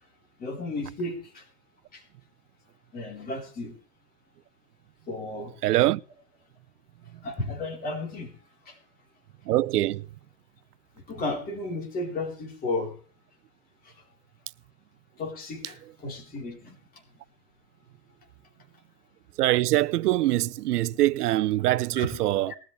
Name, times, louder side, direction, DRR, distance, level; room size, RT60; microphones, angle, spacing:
voice 1, 0.4-1.5 1.9-2.0 2.9-3.8 5.1-5.6 7.2-8.4 8.6-8.8 11.1-12.9 13.8-14.0 15.2-17.0 21.9-22.1, left 2 dB, 20° left, 4.1 m, -34 dB
voice 2, 5.6-6.0 9.5-10.1 19.4-22.6, right 16 dB, 65° right, 0.8 m, -23 dB
21.0 x 13.0 x 3.3 m
supercardioid pair, 165°, 49 cm